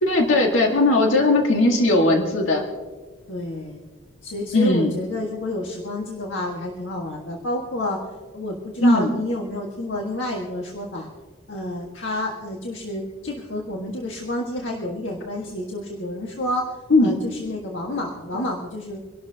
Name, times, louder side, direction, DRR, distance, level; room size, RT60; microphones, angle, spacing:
voice 1, 0.0-2.6 4.5-4.9 8.8-9.1 16.9-17.2, left 2 dB, 85° left, 1 dB, 1.7 m, -18 dB
voice 2, 3.3-3.8 4.2-8.0 8.3-11.1 11.5-16.7 17.0-19.0, left 1 dB, 70° left, -1 dB, 1.6 m, -29 dB
25.5 x 12.0 x 2.8 m, 1.4 s
head